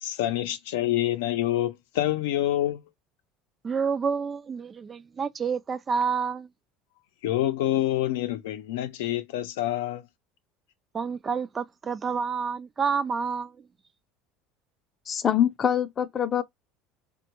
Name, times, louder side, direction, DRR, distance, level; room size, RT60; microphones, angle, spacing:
voice 1, 0.0-2.8 7.2-10.0, left 13 dB, 85° left, 0.5 m, -27 dB
voice 2, 3.6-6.5 10.9-13.7, right 5 dB, 30° right, 0.3 m, -29 dB
voice 3, 15.1-16.4, left 9 dB, 35° left, 0.5 m, -24 dB
3.6 x 2.2 x 2.9 m
supercardioid pair, 105°, 0 cm